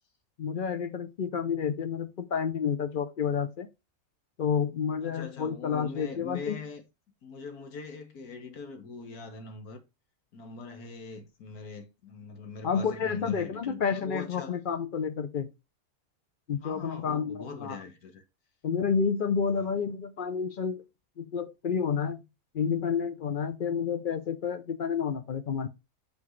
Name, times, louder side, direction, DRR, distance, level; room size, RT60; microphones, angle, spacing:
voice 1, 0.4-3.7 4.4-6.6 12.6-15.5 16.5-17.8 18.6-20.8 21.2-22.2 22.5-25.7, left 6 dB, 55° left, 0.5 m, -30 dB
voice 2, 5.0-6.8 7.2-9.8 10.3-14.6 16.6-18.2 19.5-19.7, left 4 dB, 90° left, 1.8 m, -42 dB
6.3 x 5.8 x 3.1 m
omnidirectional pair, 1.5 m